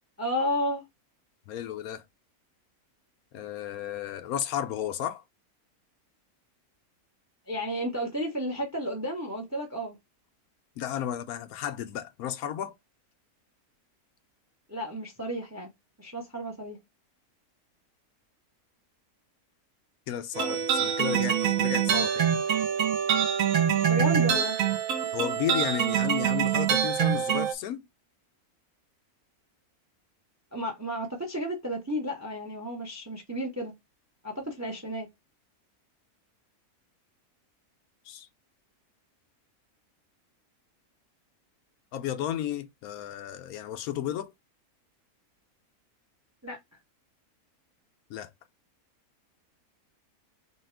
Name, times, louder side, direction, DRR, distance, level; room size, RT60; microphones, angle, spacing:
voice 1, 0.2-0.8 7.5-10.0 14.7-15.7 16.0-16.8 23.9-24.6 30.5-33.7 34.2-35.1 46.4-46.6, equal, 15° right, 0.6 m, -32 dB
voice 2, 1.5-2.0 3.3-5.2 10.8-12.7 20.1-22.3 25.1-27.8 38.1-38.3 41.9-44.3 48.1-48.3, left 10 dB, 75° left, 1.0 m, -33 dB
sound 1, 20.3-27.5, right 8 dB, 65° right, 1.1 m, -25 dB
2.9 x 2.8 x 4.3 m
omnidirectional pair, 1.6 m